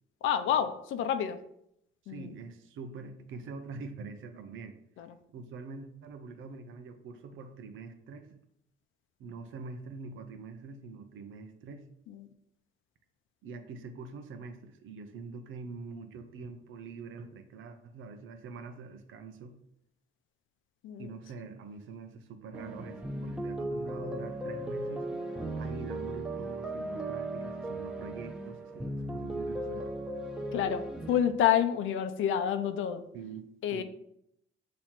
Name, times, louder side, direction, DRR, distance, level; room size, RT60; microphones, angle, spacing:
voice 1, 0.2-1.4 2.1-2.3 5.0-5.1 12.1-12.3 20.8-21.1 30.5-33.0 33.6-33.8, left 9 dB, 80° left, 9 dB, 0.6 m, -28 dB
voice 2, 2.0-4.8 5.3-8.4 9.2-11.9 13.4-19.5 21.0-29.9 33.1-33.8, right 4 dB, 80° right, 8 dB, 0.8 m, -45 dB
sound 1, 22.5-31.2, right 1 dB, 5° right, 1.0 m, -37 dB
7.3 x 3.1 x 4.4 m, 0.76 s
cardioid pair, 90°, 20 cm